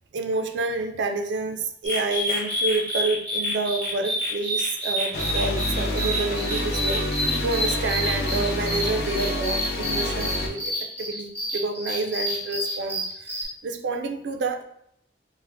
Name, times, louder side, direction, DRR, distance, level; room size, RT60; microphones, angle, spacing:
voice 1, 0.1-14.6, right 3 dB, 75° right, 5 dB, 0.3 m, -29 dB
sound 1, 1.8-13.4, equal, 10° left, 1.1 m, -29 dB
sound 2, 5.1-10.5, left 1 dB, 55° left, 0.5 m, -28 dB
5.3 x 2.1 x 2.5 m, 0.72 s
head